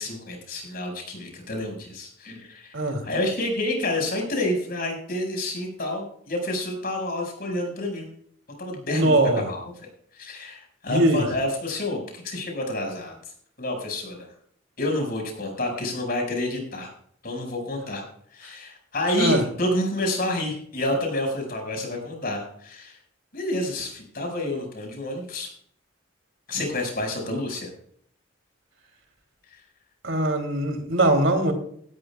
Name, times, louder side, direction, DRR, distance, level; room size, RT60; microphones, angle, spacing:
voice 1, 0.0-2.7 3.0-8.1 8.6-9.6 10.1-13.1 13.6-14.3 14.8-16.9 17.2-18.0 18.3-23.0 23.3-25.5 26.5-27.7, left 1 dB, 50° left, 2 dB, 5.6 m, -29 dB
voice 2, 2.7-3.0 8.9-9.5 10.9-11.3 19.2-19.4 30.0-31.5, right 1 dB, 75° right, 5 dB, 3.0 m, -21 dB
18.0 x 13.0 x 2.4 m, 0.62 s
head